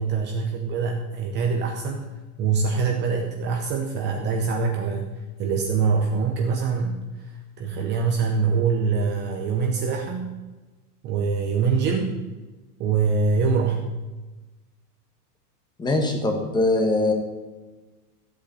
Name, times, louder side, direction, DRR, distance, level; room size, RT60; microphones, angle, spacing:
voice 1, 0.0-2.0 2.4-5.1 5.4-10.3 11.0-12.1 12.8-13.8, right 5 dB, 25° right, 3 dB, 0.8 m, -24 dB
voice 2, 15.8-17.1, left 2 dB, 10° left, 3 dB, 1.3 m, -22 dB
13.5 x 8.5 x 6.8 m, 1.2 s
supercardioid pair, 165°, 46 cm